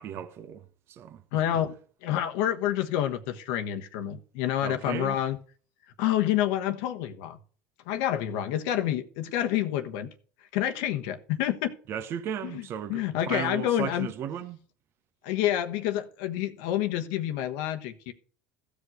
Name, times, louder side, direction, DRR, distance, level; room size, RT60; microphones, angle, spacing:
voice 1, 0.0-1.2 4.6-5.2 11.9-14.6, right 9 dB, 50° right, 1.1 m, -35 dB
voice 2, 1.3-1.7 2.0-5.4 6.0-7.4 7.9-10.1 10.5-11.8 12.4-12.6 12.9-14.1 15.2-18.1, left 12 dB, 75° left, 1.1 m, -28 dB
15.0 x 5.1 x 7.8 m
supercardioid pair, 105°, 5 cm